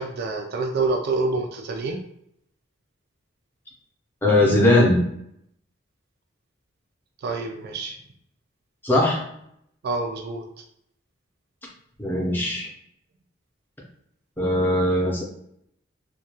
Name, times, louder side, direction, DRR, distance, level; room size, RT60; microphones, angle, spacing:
voice 1, 0.0-2.0 7.2-8.0 9.8-10.4, right 3 dB, 55° right, 3 dB, 0.3 m, -27 dB
voice 2, 4.2-5.0 8.8-9.2 12.0-12.7 14.4-15.2, left 1 dB, 10° left, -3 dB, 0.6 m, -19 dB
2.3 x 2.2 x 2.8 m, 0.72 s
head